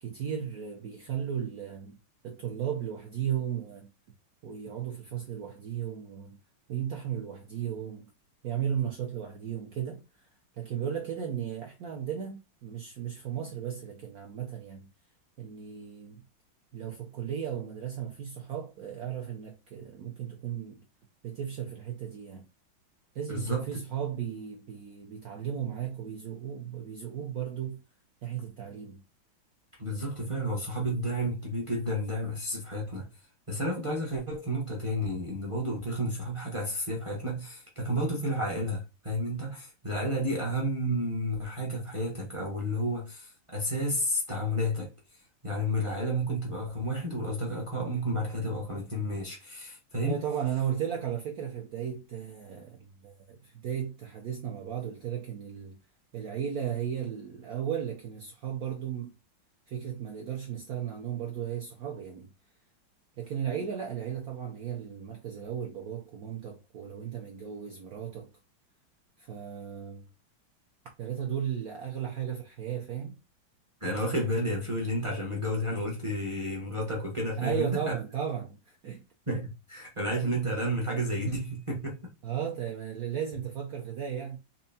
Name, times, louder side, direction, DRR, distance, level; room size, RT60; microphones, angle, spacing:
voice 1, 0.0-2.0 2.2-3.9 4.4-6.4 6.7-8.1 8.4-10.3 10.5-14.9 15.4-16.2 16.7-20.8 21.2-22.4 23.1-27.8 28.2-29.0 50.0-55.8 56.1-59.1 59.7-62.3 63.2-68.3 69.2-70.1 71.0-73.2 77.4-79.0 82.2-84.4, right 9 dB, 70° right, 0.8 m, -35 dB
voice 2, 23.3-23.7 29.8-33.1 33.5-44.9 45.4-50.2 73.8-77.9 79.3-82.0, equal, 35° right, 0.5 m, -31 dB
4.4 x 2.6 x 2.7 m
omnidirectional pair, 2.3 m